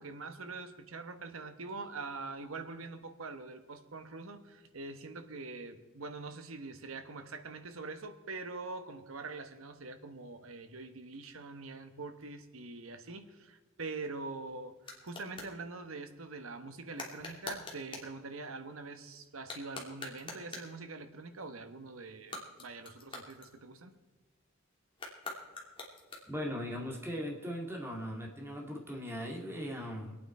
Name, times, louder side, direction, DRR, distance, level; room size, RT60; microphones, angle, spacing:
voice 1, 0.0-23.9, right 3 dB, 80° right, 8 dB, 1.2 m, -44 dB
sound 1, 13.9-15.6 16.9-18.2 19.4-20.8 22.1-24.0 24.9-26.5, left 2 dB, 25° left, 2.5 m, -45 dB
voice 2, 26.3-30.2, equal, 10° right, 0 dB, 2.3 m, -39 dB
24.5 x 9.1 x 4.4 m, 1.2 s
head